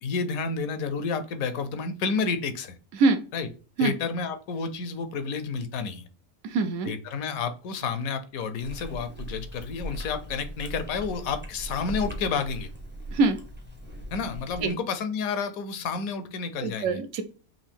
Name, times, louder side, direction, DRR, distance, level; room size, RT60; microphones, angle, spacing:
voice 1, 0.0-2.8 3.3-3.5 3.8-6.1 6.9-12.7 14.1-17.0, left 5 dB, 75° left, 9 dB, 1.1 m, -30 dB
voice 2, 6.4-6.9 13.1-13.4 14.6-14.7 16.6-17.2, right 3 dB, 70° right, 8 dB, 0.9 m, -23 dB
Chewing mastication, 8.6-14.7, right 1 dB, 10° right, 0.5 m, -39 dB
5.3 x 2.6 x 3.4 m, 0.37 s
omnidirectional pair, 1.5 m